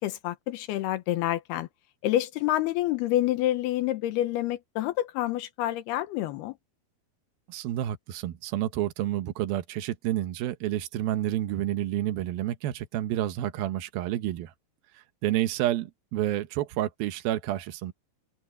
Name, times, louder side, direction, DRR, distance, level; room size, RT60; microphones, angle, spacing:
voice 1, 0.0-1.7 2.0-6.5, left 14 dB, 85° left, 3.1 m, -28 dB
voice 2, 7.5-14.5 15.2-17.9, right 13 dB, 75° right, 2.9 m, -29 dB
open air
omnidirectional pair, 4.4 m